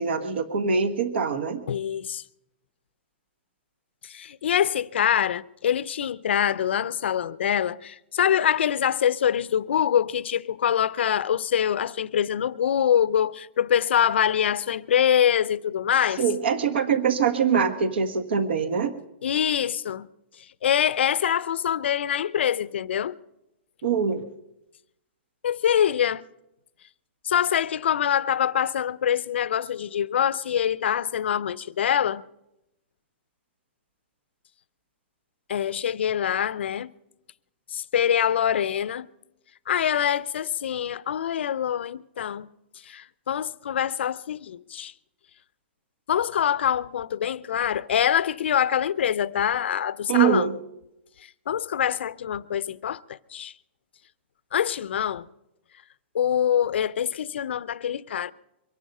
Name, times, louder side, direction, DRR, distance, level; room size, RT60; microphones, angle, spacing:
voice 1, 0.0-1.6 16.2-18.9 23.8-24.2 50.1-50.6, right 6 dB, 65° right, 1.5 m, -23 dB
voice 2, 1.7-2.2 4.0-16.2 19.2-20.1 20.6-23.2 25.4-26.2 27.2-32.2 35.5-36.9 37.7-39.1 39.7-42.5 42.9-44.9 46.1-50.5 51.5-53.5 54.5-55.3 56.1-58.3, left 9 dB, 70° left, 0.5 m, -24 dB
23.5 x 11.0 x 5.5 m
hypercardioid pair, 170°, 6 cm